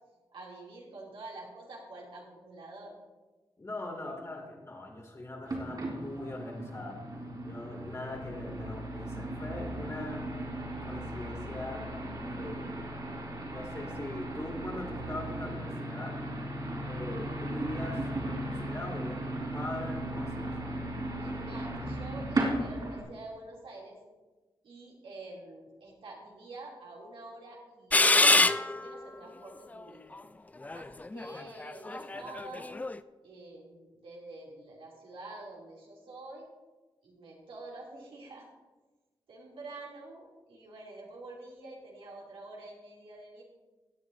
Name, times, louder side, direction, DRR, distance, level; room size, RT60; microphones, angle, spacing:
voice 1, 0.3-2.9 21.2-24.0 24.6-30.2 30.7-32.7 33.2-36.4 37.0-38.5 39.3-43.4, right 2 dB, 80° right, -3 dB, 2.9 m, -47 dB
voice 2, 3.6-7.0 7.4-10.2 10.8-11.8 12.1-12.8 13.5-16.2 16.8-20.5, left 2 dB, 30° left, 0 dB, 2.5 m, -41 dB
sound 1, 5.5-23.0, right 1 dB, 50° right, 3.6 m, -36 dB
sound 2, 27.9-29.1 29.8-29.9 30.7-33.0, left 2 dB, 15° left, 0.3 m, -25 dB
17.0 x 9.5 x 2.7 m, 1.2 s
wide cardioid pair, 90°, 9 cm